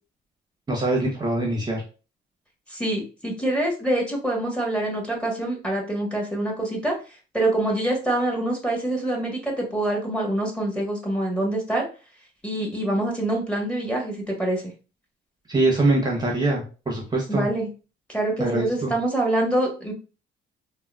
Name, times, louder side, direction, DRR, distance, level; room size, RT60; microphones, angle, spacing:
voice 1, 0.7-1.8 15.5-17.5 18.4-18.9, right 2 dB, 20° right, -1 dB, 0.8 m, -23 dB
voice 2, 2.7-7.0 7.3-11.9 12.4-14.7 17.3-17.7 18.1-19.9, right 1 dB, 5° left, -1 dB, 1.0 m, -25 dB
3.6 x 2.1 x 2.2 m, 0.35 s
cardioid pair, 90°, 20 cm